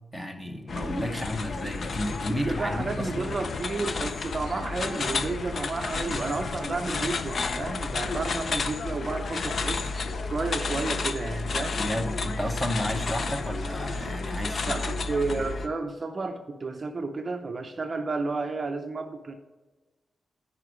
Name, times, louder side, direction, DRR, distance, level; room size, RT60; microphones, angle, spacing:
voice 1, 0.1-3.4 11.8-15.4, equal, 10° left, 5 dB, 0.8 m, -32 dB
sound 1, 0.7-15.7, left 4 dB, 45° left, 0.5 m, -31 dB
voice 2, 2.3-9.8 10.2-11.8 14.7-19.3, right 3 dB, 30° right, 6 dB, 0.5 m, -31 dB
9.6 x 5.0 x 4.9 m, 1.2 s
wide cardioid pair, 175°, 0 cm